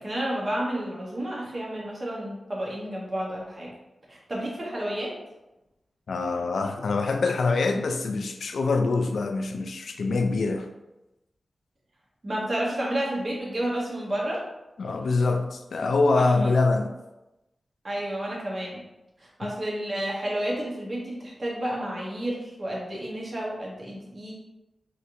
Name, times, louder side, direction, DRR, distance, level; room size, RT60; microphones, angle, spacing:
voice 1, 0.0-3.7 4.1-5.1 12.2-14.4 16.1-16.5 17.8-18.8 19.2-24.3, right 1 dB, 40° right, 0.9 m, -31 dB
voice 2, 6.1-10.7 14.8-17.0 19.4-19.5, left 3 dB, 90° left, 0.3 m, -24 dB
3.2 x 2.8 x 2.5 m
wide cardioid pair, 115°, 0 cm